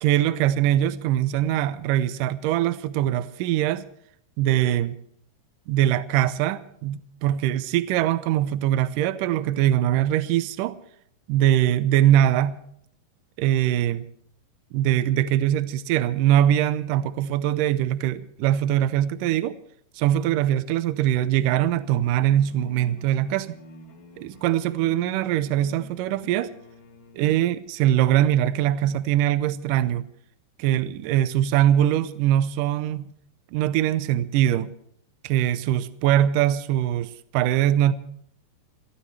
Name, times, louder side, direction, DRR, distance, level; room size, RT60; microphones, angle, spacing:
voice 1, 0.0-3.9 4.4-5.0 5.7-10.8 11.3-12.6 13.4-14.0 14.7-19.6 20.0-23.6 24.2-26.5 27.1-30.1 30.6-33.1 33.5-34.7 35.2-37.9, right 12 dB, 80° right, 13 dB, 1.9 m, -22 dB
sound 1, 21.5-27.3, left 5 dB, 60° left, 3.7 m, -48 dB
29.0 x 13.0 x 3.3 m, 0.68 s
omnidirectional pair, 4.7 m